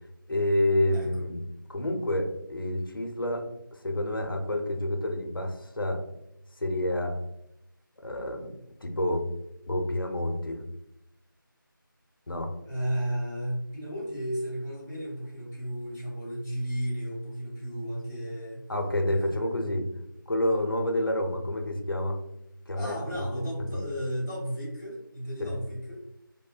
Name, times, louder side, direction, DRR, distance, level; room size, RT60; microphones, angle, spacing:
voice 1, 0.3-1.4 1.7-3.4 3.7-6.0 6.6-7.2 8.0-8.5 8.8-9.3 9.7-10.6 12.3-12.5 18.7-19.9 20.3-22.2 22.7-23.3 23.7-23.8 25.4-25.6, left 1 dB, 75° left, 3 dB, 0.6 m, -28 dB
voice 2, 0.9-1.2 12.6-18.7 19.1-19.4 22.7-26.1, equal, 5° right, -16 dB, 0.9 m, -34 dB
2.7 x 2.0 x 2.4 m, 0.84 s
figure-of-eight pair, 170°, 12 cm